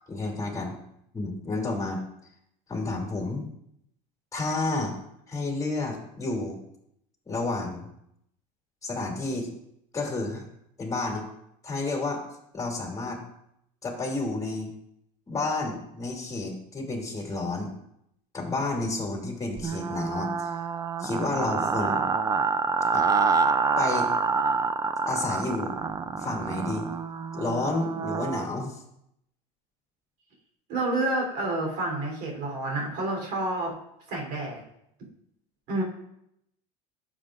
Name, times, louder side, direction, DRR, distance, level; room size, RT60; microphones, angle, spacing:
voice 1, 0.1-0.7 1.1-2.0 2.7-3.5 4.3-5.0 5.3-6.6 7.3-7.9 8.8-9.5 9.9-10.5 10.8-11.3 11.6-12.2 12.5-13.2 13.8-14.7 15.3-17.7 18.3-20.5 21.0-22.0 22.9-23.1 23.8-24.1 25.1-25.7 26.2-26.8 27.3-28.8, left 2 dB, 20° left, 0 dB, 2.9 m, -30 dB
sound 1, 19.6-28.5, right 5 dB, 20° right, 0.5 m, -27 dB
voice 2, 30.7-33.7 34.1-34.6 35.7-35.8, right 2 dB, 60° right, 0 dB, 3.6 m, -29 dB
12.0 x 7.4 x 2.6 m, 0.77 s
supercardioid pair, 115°, 18 cm